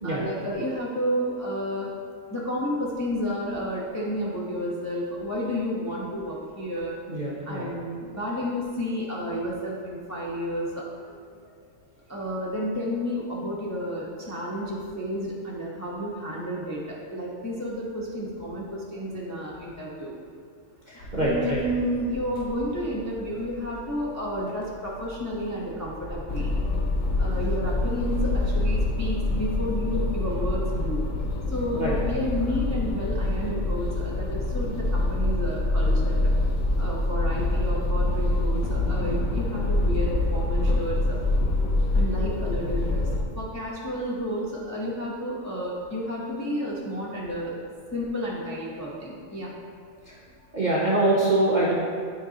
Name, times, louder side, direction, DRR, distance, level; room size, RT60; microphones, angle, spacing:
voice 1, 0.0-1.9 2.3-7.0 7.5-10.9 12.1-20.2 20.9-26.5 27.2-31.0 31.5-36.3 36.8-41.2 41.9-47.6 47.9-49.5, equal, 20° left, -5 dB, 0.4 m, -31 dB
voice 2, 7.1-7.7 20.9-21.6 31.7-32.0 50.1-50.2 50.5-51.7, right 2 dB, 45° right, -5 dB, 0.6 m, -24 dB
sound 1, 21.0-28.7, left 1 dB, 90° left, 1.5 m, -43 dB
sound 2, 26.3-43.2, left 2 dB, 65° left, 0.6 m, -25 dB
8.8 x 4.6 x 2.8 m, 2.1 s
omnidirectional pair, 1.7 m